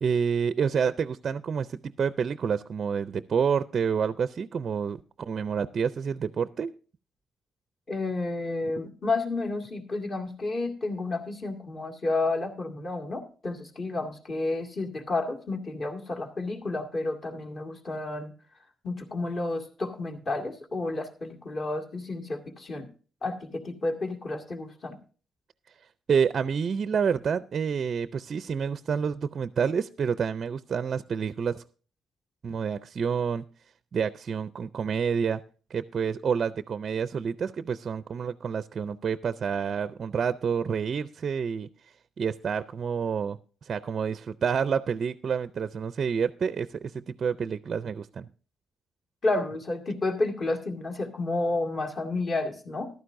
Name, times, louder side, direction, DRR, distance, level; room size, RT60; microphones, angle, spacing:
voice 1, 0.0-6.7 26.1-31.6 32.4-33.4 33.9-35.4 35.7-41.7 42.2-48.3, right 6 dB, 45° right, 13 dB, 0.4 m, -28 dB
voice 2, 7.9-18.3 18.8-22.9 23.2-25.0 49.2-52.9, left 2 dB, 40° left, 3 dB, 2.0 m, -31 dB
14.5 x 12.0 x 2.6 m, 0.39 s
cardioid pair, 125°, 0 cm